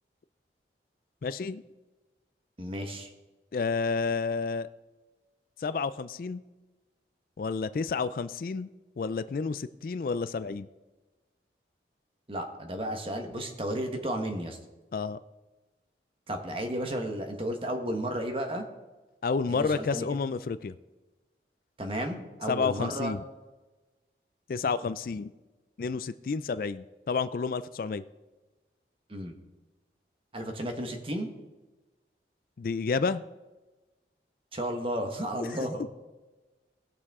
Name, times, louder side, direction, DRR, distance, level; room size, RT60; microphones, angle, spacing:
voice 1, 1.2-1.6 3.5-4.7 5.6-6.4 7.4-8.7 9.0-10.7 14.9-15.2 19.2-20.7 22.5-23.2 24.5-25.3 25.8-28.0 32.6-33.2 35.5-35.6, left 4 dB, 50° left, 13 dB, 0.3 m, -30 dB
voice 2, 2.6-3.1 12.3-14.6 16.3-18.6 19.5-20.0 21.8-23.1 29.1-29.3 30.3-31.3 34.5-35.8, right 1 dB, 30° right, 4 dB, 1.3 m, -33 dB
19.0 x 6.6 x 3.6 m, 1.2 s
head